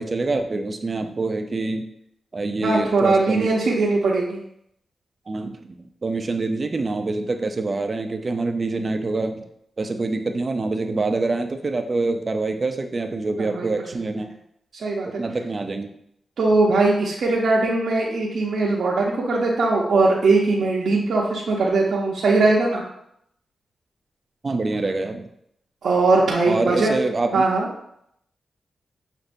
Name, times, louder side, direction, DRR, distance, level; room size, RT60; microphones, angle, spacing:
voice 1, 0.0-1.9 2.3-3.5 5.3-9.4 9.8-14.3 15.0-15.9 24.4-25.3 26.5-27.4, right 3 dB, 40° right, 6 dB, 0.5 m, -25 dB
voice 2, 2.6-4.4 13.4-13.7 14.7-15.2 16.4-22.8 25.8-27.0 27.3-27.7, right 3 dB, 75° right, -5 dB, 0.7 m, -20 dB
6.4 x 2.6 x 2.6 m, 0.74 s
cardioid pair, 75°, 0 cm